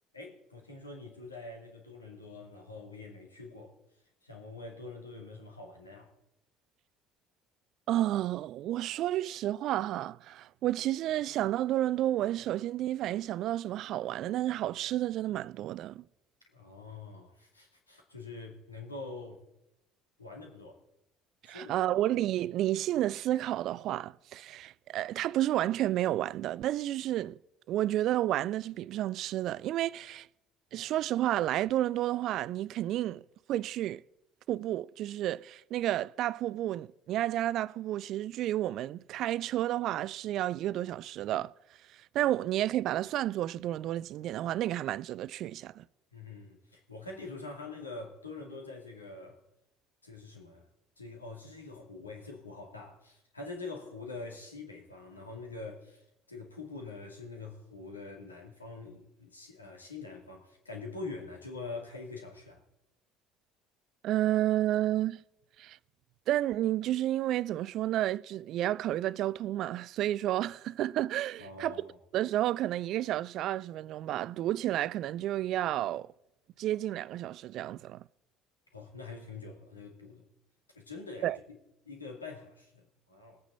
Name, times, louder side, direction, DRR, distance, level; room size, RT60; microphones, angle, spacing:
voice 1, 0.1-3.7 4.2-6.1 16.5-19.4 20.2-20.8 21.4-21.9 46.1-49.4 50.0-50.6 51.0-56.0 56.3-62.6 71.4-72.0 78.7-80.3 80.8-81.6 81.9-83.4, left 3 dB, 85° left, 2.1 m, -45 dB
voice 2, 7.9-16.0 21.5-27.4 27.7-30.3 30.7-33.2 33.5-34.0 34.5-41.5 42.1-45.8 64.0-65.2 65.6-65.8 66.3-71.7 72.1-76.1 76.6-78.0 81.2-81.4, right 13 dB, 50° right, 0.4 m, -31 dB
20.5 x 8.9 x 4.0 m
figure-of-eight pair, 55°, 0 cm